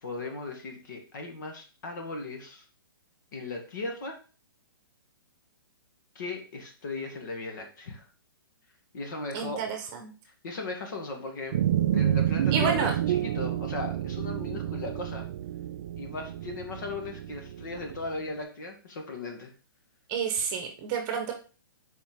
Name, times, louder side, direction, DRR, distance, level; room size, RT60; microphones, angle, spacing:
voice 1, 0.0-2.6 3.3-4.2 6.2-8.0 8.9-9.6 10.3-11.5 11.9-15.3 16.0-19.5, left 3 dB, 55° left, 4 dB, 2.0 m, -37 dB
voice 2, 9.3-10.1 12.5-12.9 20.1-21.3, right 6 dB, 25° right, 4 dB, 1.2 m, -29 dB
sound 1, 11.5-18.1, right 11 dB, 45° right, 0.4 m, -29 dB
7.2 x 4.6 x 3.7 m, 0.36 s
hypercardioid pair, 160°, 12 cm